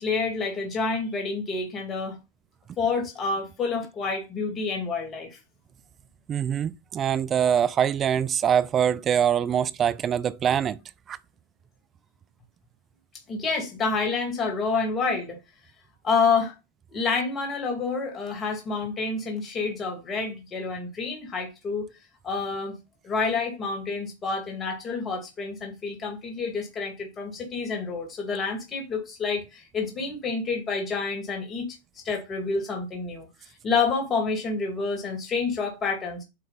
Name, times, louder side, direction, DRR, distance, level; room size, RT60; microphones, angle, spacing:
voice 1, 0.0-2.2 2.8-5.4 13.3-15.4 16.0-16.5 16.9-21.9 22.2-22.8 23.0-31.7 32.0-33.3 33.6-36.2, left 4 dB, 25° left, 2.5 m, -28 dB
voice 2, 6.3-10.8 11.1-11.2, right 9 dB, 30° right, 0.5 m, -24 dB
8.7 x 3.2 x 4.1 m
hypercardioid pair, 105°, 0 cm